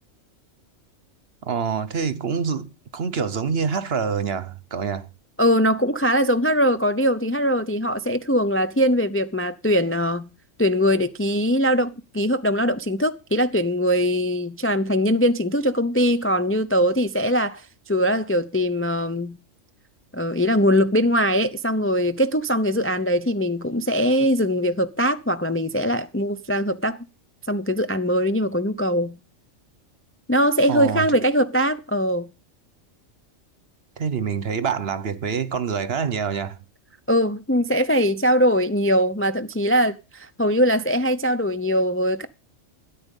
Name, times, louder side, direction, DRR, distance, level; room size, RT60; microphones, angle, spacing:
voice 1, 1.4-5.1 30.7-31.1 34.0-36.6, right 6 dB, 55° right, 1.2 m, -26 dB
voice 2, 5.4-10.3 10.6-19.4 20.1-27.0 27.5-29.2 30.3-32.3 37.1-42.3, equal, 15° left, 0.4 m, -21 dB
13.0 x 10.0 x 5.3 m
omnidirectional pair, 1.3 m